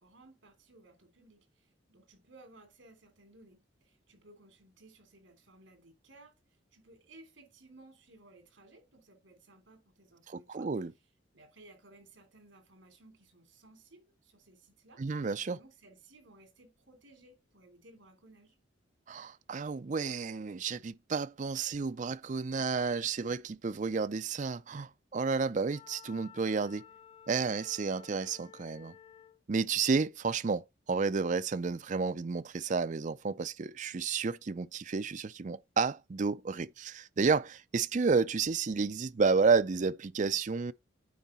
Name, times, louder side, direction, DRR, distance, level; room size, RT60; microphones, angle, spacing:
voice 1, 0.0-10.7 11.3-15.0 15.5-18.5, right 2 dB, 75° right, 3.1 m, -59 dB
voice 2, 10.3-10.9 15.0-15.6 19.1-26.9 27.3-28.9 29.5-30.6 30.9-40.7, right 4 dB, 40° right, 0.4 m, -31 dB
Wind instrument woodwind instrument, 25.7-29.4, left 8 dB, 25° left, 0.6 m, -54 dB
9.4 x 4.6 x 4.3 m
head